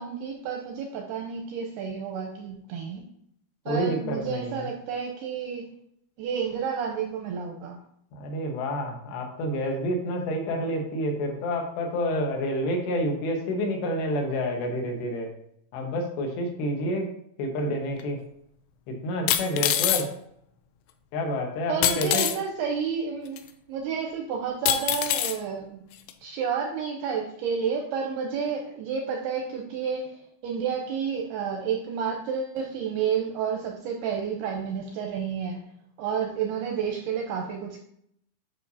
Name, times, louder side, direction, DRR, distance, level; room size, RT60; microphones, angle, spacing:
voice 1, 0.0-3.0 3.7-5.7 6.2-7.8 21.7-23.4 23.7-25.8 26.2-35.6 36.0-37.8, right 6 dB, 85° right, 1 dB, 2.3 m, -30 dB
voice 2, 3.7-4.6 8.1-15.3 15.7-17.1 17.4-18.2 18.9-20.1 21.1-22.3, equal, 70° left, 1 dB, 3.3 m, -28 dB
sound 1, 18.0-18.1 19.3-20.0 21.8-22.4 23.4-23.5 24.7-25.4 26.1-26.2, left 12 dB, 90° left, 2.4 m, -24 dB
9.9 x 6.0 x 2.7 m, 0.71 s
omnidirectional pair, 5.3 m